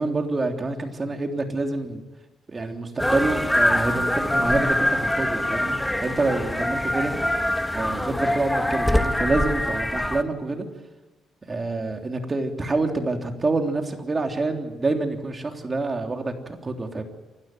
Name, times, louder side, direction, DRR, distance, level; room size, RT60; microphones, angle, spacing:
voice 1, 0.0-2.0 2.5-7.1 7.7-10.7 11.5-17.0, right 3 dB, 30° right, 4 dB, 3.3 m, -27 dB
sound 1, 3.0-10.2, left 1 dB, 5° left, 1.6 m, -24 dB
28.5 x 12.5 x 9.3 m, 1.2 s
cardioid pair, 90°, 0 cm